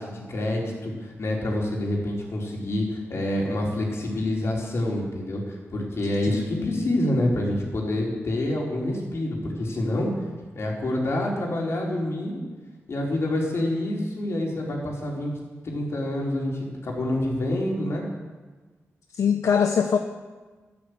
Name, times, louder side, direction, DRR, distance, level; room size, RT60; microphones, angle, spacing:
voice 1, 0.0-10.1 10.5-12.4 12.9-15.4 15.6-18.1, left 1 dB, 60° left, -1 dB, 4.3 m, -27 dB
voice 2, 6.2-6.9 19.1-20.0, left 7 dB, 80° left, 6 dB, 0.9 m, -23 dB
13.0 x 12.0 x 8.2 m, 1.3 s
wide cardioid pair, 105°, 5 cm